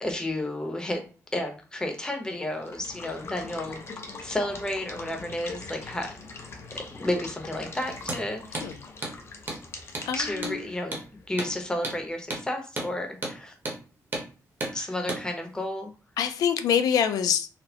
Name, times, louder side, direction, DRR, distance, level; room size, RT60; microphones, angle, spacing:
voice 1, 0.0-1.0 1.3-3.8 4.2-6.1 6.7-8.6 10.1-11.0 11.3-13.5 14.7-15.9, left 1 dB, 10° left, 0.8 m, -31 dB
Water / Water tap faucet / Liquid, 2.5-12.1, left 3 dB, 45° left, 0.7 m, -41 dB
Hammer, 8.0-8.2 8.5-8.7 9.0-9.2 9.5-9.6 9.9-10.1 10.4-10.6 10.9-11.1 11.4-11.5 11.8-12.0 12.3-12.4 12.8-12.9 13.2-13.4 13.7-13.8 14.1-14.3 14.6-14.8 15.1-15.2, right 2 dB, 35° right, 1.0 m, -32 dB
voice 2, 10.1-10.6 14.7-14.9 16.2-17.5, left 8 dB, 85° left, 0.3 m, -25 dB
4.1 x 2.1 x 2.8 m
cardioid pair, 105°, 6 cm